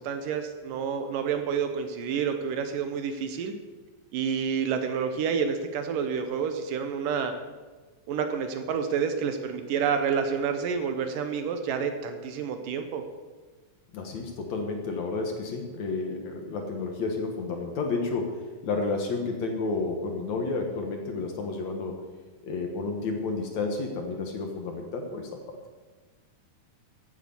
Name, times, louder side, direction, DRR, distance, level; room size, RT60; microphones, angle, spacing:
voice 1, 0.0-3.5 4.1-7.3 8.1-13.0, right 6 dB, 70° right, 7 dB, 2.4 m, -29 dB
voice 2, 13.9-22.0 22.4-25.6, left 3 dB, 55° left, 3 dB, 2.4 m, -31 dB
15.5 x 8.2 x 7.1 m, 1.3 s
omnidirectional pair, 4.3 m